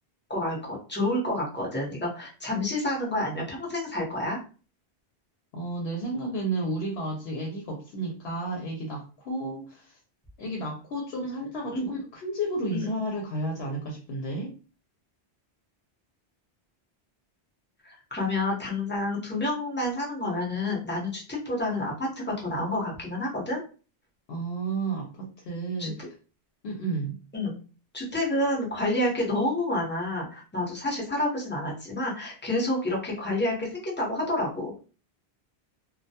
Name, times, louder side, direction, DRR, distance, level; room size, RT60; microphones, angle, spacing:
voice 1, 0.3-4.4 11.7-11.9 12.7-12.9 17.8-23.6 25.8-25.9 27.3-27.5 27.9-34.8, left 1 dB, 10° left, -4 dB, 0.7 m, -29 dB
voice 2, 5.5-10.0 10.4-14.5 24.3-26.1 26.6-27.2, right 2 dB, 70° left, 0 dB, 0.8 m, -32 dB
2.2 x 2.1 x 2.7 m, 0.36 s
omnidirectional pair, 1.1 m